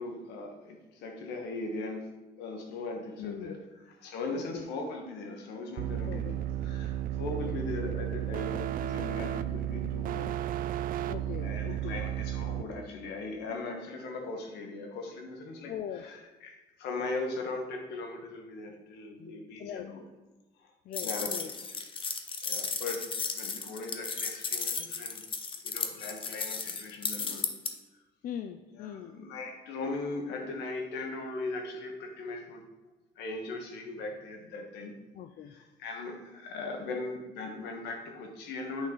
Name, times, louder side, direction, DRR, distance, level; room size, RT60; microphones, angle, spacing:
voice 1, 0.0-2.1 2.4-3.6 4.0-10.4 11.4-16.5 16.8-20.0 21.0-21.3 22.4-23.0 23.3-25.2 25.6-27.7 28.7-32.6 33.2-34.9 35.4-38.9, left 3 dB, 85° left, 3 dB, 1.5 m, -39 dB
voice 2, 3.2-3.6 4.3-4.7 6.1-6.4 7.3-7.6 11.1-12.0 15.7-16.0 19.6-19.9 20.8-21.5 28.2-29.2 35.1-35.6, left 9 dB, 55° left, 8 dB, 0.5 m, -41 dB
sound 1, 5.8-12.6, right 11 dB, 55° right, 0.4 m, -33 dB
sound 2, 20.9-27.7, left 5 dB, 30° left, 0.8 m, -34 dB
8.8 x 5.4 x 4.0 m, 1.1 s
cardioid pair, 110°, 17 cm